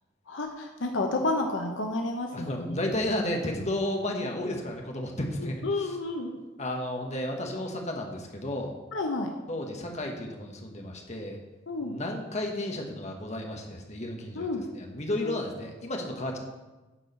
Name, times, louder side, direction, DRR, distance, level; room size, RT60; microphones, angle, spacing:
voice 1, 0.3-2.8 5.4-6.4 8.9-9.3 11.7-11.9 14.3-14.7 15.2-15.3, left 2 dB, 70° left, 3 dB, 0.8 m, -30 dB
voice 2, 2.3-5.9 6.6-8.7 9.5-11.4 11.8-14.5 14.8-16.4, left 1 dB, 35° left, 1 dB, 1.3 m, -32 dB
9.8 x 4.7 x 6.8 m, 1.1 s
head